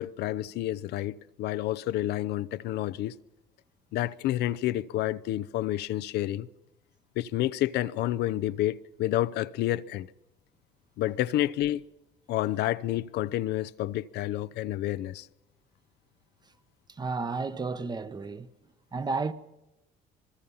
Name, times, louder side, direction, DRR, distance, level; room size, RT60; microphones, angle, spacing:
voice 1, 0.0-3.1 3.9-6.5 7.2-10.1 11.0-11.8 12.3-15.3, left 14 dB, 80° left, 0.8 m, -29 dB
voice 2, 16.9-18.5 18.9-19.3, right 4 dB, 25° right, 1.2 m, -32 dB
26.5 x 21.0 x 5.6 m
cardioid pair, 110°, 17 cm